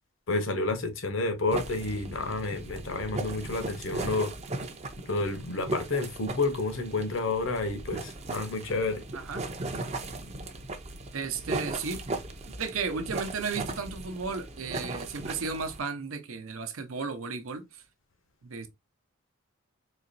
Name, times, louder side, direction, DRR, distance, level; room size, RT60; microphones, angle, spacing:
voice 1, 0.3-4.3 5.1-9.0, left 3 dB, 65° left, 0.9 m, -30 dB
sound 1, 1.5-15.8, right 2 dB, 30° right, 0.5 m, -37 dB
voice 2, 9.1-9.5 11.1-12.0 12.6-17.6 18.4-18.7, right 4 dB, 80° right, 0.8 m, -34 dB
4.2 x 2.9 x 2.6 m
head